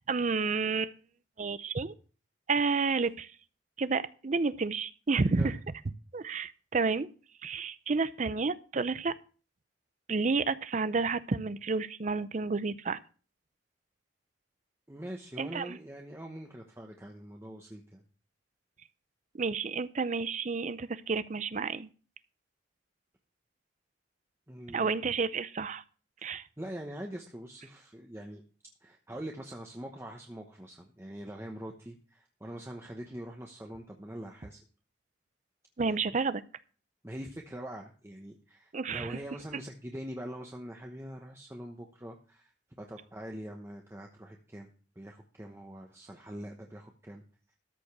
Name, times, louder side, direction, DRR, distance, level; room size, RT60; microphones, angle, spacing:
voice 1, 0.1-0.9 1.4-1.9 2.5-3.3 3.8-5.6 6.1-7.1 7.4-9.1 10.1-13.0 15.4-15.8 19.3-21.9 24.7-25.8 26.2-26.4 35.8-36.4 38.7-39.2, right 4 dB, 40° right, 16 dB, 0.5 m, -30 dB
voice 2, 14.9-18.0 24.5-24.9 26.6-28.4 28.8-34.6 35.8-36.2 37.0-47.2, right 1 dB, 15° right, 1 dB, 1.0 m, -43 dB
13.5 x 5.1 x 6.0 m, 0.39 s
head